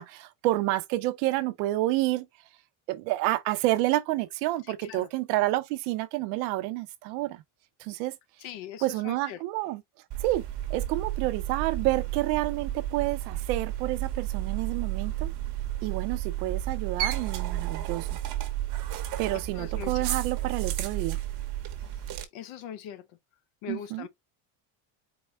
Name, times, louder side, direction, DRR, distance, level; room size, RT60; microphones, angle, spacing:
voice 1, 0.0-2.3 2.9-7.4 7.8-8.2 8.8-9.8 10.2-10.4 10.7-15.3 15.8-18.1 19.2-21.2 23.7-24.1, right 17 dB, 90° right, 0.9 m, -29 dB
voice 2, 8.4-9.4 19.3-20.1 22.3-23.0 23.6-24.1, left 10 dB, 60° left, 0.9 m, -41 dB
sound 1, 10.1-22.3, right 13 dB, 50° right, 1.1 m, -32 dB
4.6 x 2.1 x 4.4 m
cardioid pair, 145°, 50 cm